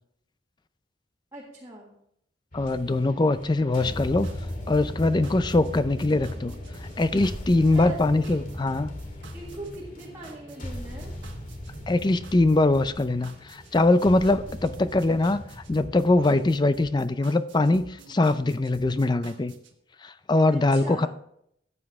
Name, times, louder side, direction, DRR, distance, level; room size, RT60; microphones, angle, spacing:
voice 1, 1.3-2.0 7.6-8.4 9.3-11.1 20.5-21.1, right 2 dB, 15° right, -4 dB, 1.7 m, -41 dB
sound 1, 2.5-16.8, left 1 dB, 45° left, 2.0 m, -38 dB
voice 2, 2.5-4.3 4.7-6.5 6.8-8.9 11.9-15.4 15.7-19.5 20.0-21.1, left 2 dB, 25° left, 13 dB, 0.4 m, -22 dB
sound 2, 3.7-19.7, right 2 dB, 80° right, 1.4 m, -48 dB
14.0 x 8.6 x 3.5 m, 0.73 s
head